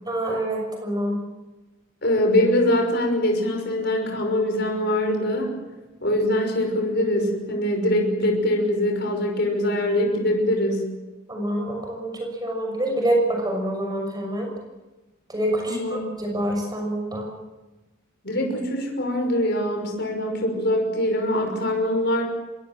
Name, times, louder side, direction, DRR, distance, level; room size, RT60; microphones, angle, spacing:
voice 1, 0.1-1.2 11.3-14.5 15.3-17.3, right 1 dB, 20° right, 1 dB, 6.4 m, -26 dB
voice 2, 2.0-5.5 6.0-10.9 15.7-16.0 18.2-22.2, left 1 dB, 55° left, 3 dB, 5.9 m, -23 dB
26.0 x 22.0 x 7.6 m, 1.1 s
head